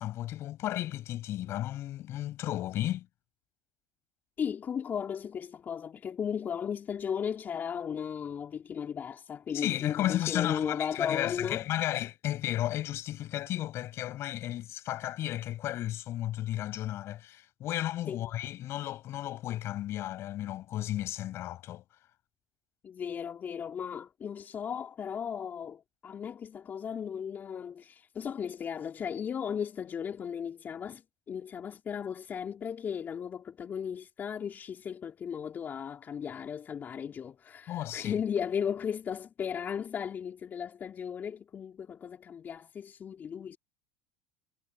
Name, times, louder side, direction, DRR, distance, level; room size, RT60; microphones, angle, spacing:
voice 1, 0.0-3.1 9.5-21.8 37.7-38.2, left 13 dB, 50° left, 6.1 m, -33 dB
voice 2, 4.4-11.7 18.1-18.3 22.8-43.6, left 7 dB, 35° left, 4.1 m, -36 dB
hypercardioid pair, 90°, 5 cm